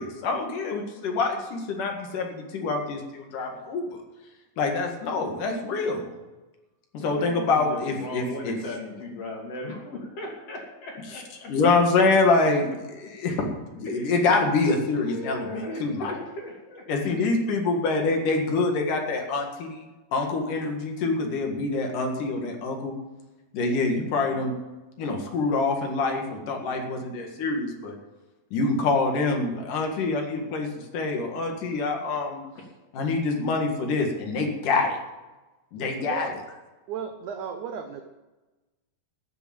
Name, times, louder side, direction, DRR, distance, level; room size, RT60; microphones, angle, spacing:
voice 1, 0.0-3.8 4.6-6.1 6.9-8.6 11.5-13.5 13.7-16.1 16.9-23.0 23.5-24.5 25.0-27.9 28.5-32.4 32.9-35.0 35.7-36.3, left 3 dB, 60° left, 2 dB, 3.2 m, -26 dB
voice 2, 6.9-11.5 13.8-14.3 14.9-17.5 20.2-20.3 23.8-24.5 32.6-32.7, left 2 dB, 45° left, -1 dB, 3.6 m, -38 dB
voice 3, 36.9-38.0, right 7 dB, 70° right, 5 dB, 1.9 m, -34 dB
14.0 x 6.9 x 8.8 m, 1.1 s
omnidirectional pair, 4.3 m